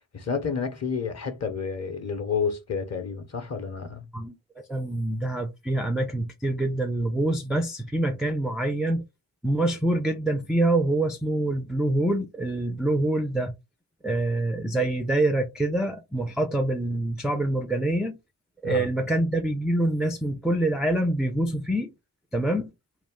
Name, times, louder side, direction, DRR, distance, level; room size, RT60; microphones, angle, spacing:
voice 1, 0.1-4.1 18.6-18.9, left 5 dB, 30° left, 0.8 m, -30 dB
voice 2, 4.1-9.0 9.4-13.5 14.0-18.2 18.6-21.9 22.3-22.7, right 1 dB, ahead, 0.3 m, -25 dB
2.4 x 2.0 x 3.5 m
hypercardioid pair, 50°, 49 cm